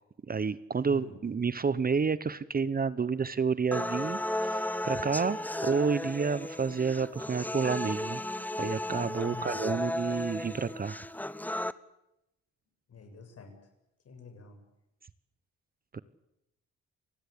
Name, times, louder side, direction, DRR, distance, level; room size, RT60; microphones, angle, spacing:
voice 1, 0.3-8.2 8.6-11.0 15.9-16.0, right 5 dB, 30° right, 16 dB, 1.0 m, -30 dB
voice 2, 0.9-1.2 9.2-9.6 12.9-13.6 14.0-14.6, left 4 dB, 55° left, 6 dB, 7.7 m, -46 dB
sound 1, 3.7-11.7, left 1 dB, 5° left, 1.0 m, -34 dB
29.0 x 20.0 x 8.6 m, 0.86 s
cardioid pair, 90°, 30 cm